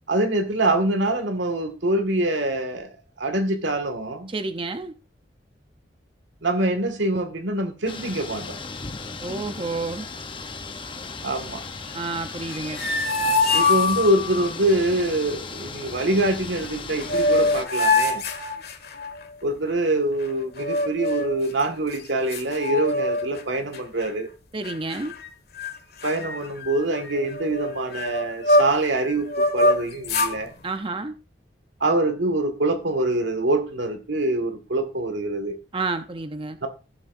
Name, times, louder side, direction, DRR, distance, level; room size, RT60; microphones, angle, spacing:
voice 1, 0.1-2.9 3.2-4.3 6.4-8.6 11.2-11.6 13.5-18.2 19.4-24.3 26.0-30.5 31.8-35.6 36.6-36.7, right 2 dB, 90° right, 1.9 m, -24 dB
voice 2, 4.3-4.9 9.2-10.1 11.9-12.8 24.5-25.2 30.6-31.2 35.7-36.6, right 3 dB, 30° right, 0.7 m, -30 dB
sound 1, 7.9-17.7, left 4 dB, 30° left, 0.8 m, -36 dB
sound 2, 12.4-14.5 16.6-16.7 17.0-19.2 20.6-21.4 21.9-22.0 22.3-23.4 23.7-24.1 24.6-25.3 25.6-25.7 26.0-28.9 29.3-30.4, left 2 dB, 60° left, 1.6 m, -23 dB
16.5 x 7.4 x 2.6 m
head